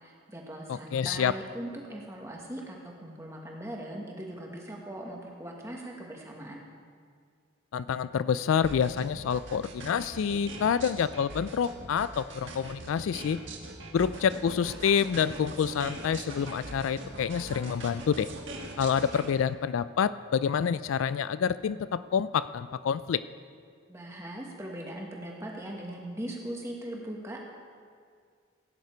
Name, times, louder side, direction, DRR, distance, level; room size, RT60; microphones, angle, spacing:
voice 1, 0.0-6.6 23.9-27.4, right 1 dB, 15° right, -1 dB, 1.4 m, -40 dB
voice 2, 0.7-1.4 7.7-13.4 13.9-18.3 18.8-23.2, left 7 dB, 80° left, 15 dB, 0.3 m, -28 dB
sound 1, 8.6-19.3, right 2 dB, 65° right, 1.5 m, -42 dB
16.5 x 9.4 x 4.5 m, 2.1 s
head